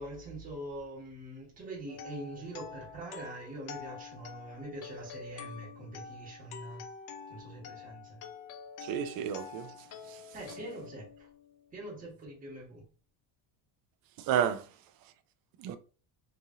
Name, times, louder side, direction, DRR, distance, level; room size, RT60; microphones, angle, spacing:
voice 1, 0.0-6.8 7.3-8.2 10.3-11.3 11.7-12.8, right 1 dB, 15° right, 1.3 m, -43 dB
sound 1, 1.9-11.8, left 6 dB, 45° left, 0.4 m, -47 dB
voice 2, 8.8-9.7 10.1-10.2 14.2-14.7 15.6-15.8, right 9 dB, 50° right, 0.5 m, -31 dB
3.2 x 2.7 x 3.6 m
cardioid pair, 180°, 47 cm